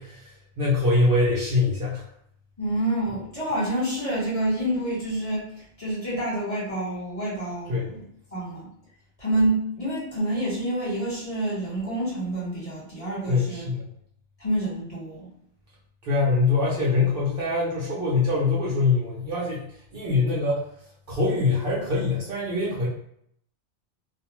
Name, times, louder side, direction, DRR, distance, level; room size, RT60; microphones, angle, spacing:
voice 1, 0.0-2.1 7.7-7.9 13.3-13.9 16.0-19.7 19.9-20.6 21.1-22.9, left 3 dB, 55° right, -5 dB, 0.9 m, -24 dB
voice 2, 2.6-8.0 8.3-8.7 9.2-13.7 14.4-15.3, right 1 dB, 30° left, -8 dB, 1.4 m, -28 dB
2.5 x 2.3 x 2.9 m, 0.69 s
omnidirectional pair, 1.2 m